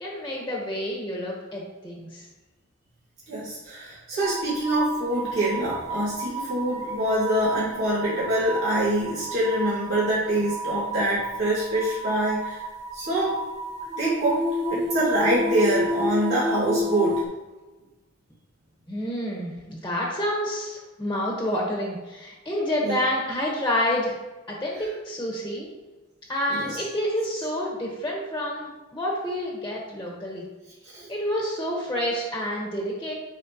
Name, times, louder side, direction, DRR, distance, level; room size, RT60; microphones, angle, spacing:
voice 1, 0.0-2.3 18.9-24.2 24.5-25.7 26.3-30.5 31.1-33.1, equal, 15° left, -3 dB, 1.4 m, -28 dB
voice 2, 3.3-12.6 12.9-13.4 14.0-14.4 14.7-17.2 22.8-23.0 26.5-26.8 30.9-31.1, right 1 dB, 70° right, -9 dB, 2.4 m, -25 dB
sound 1, 4.2-17.2, equal, 35° right, 1.3 m, -31 dB
10.5 x 4.7 x 3.1 m, 1.2 s
head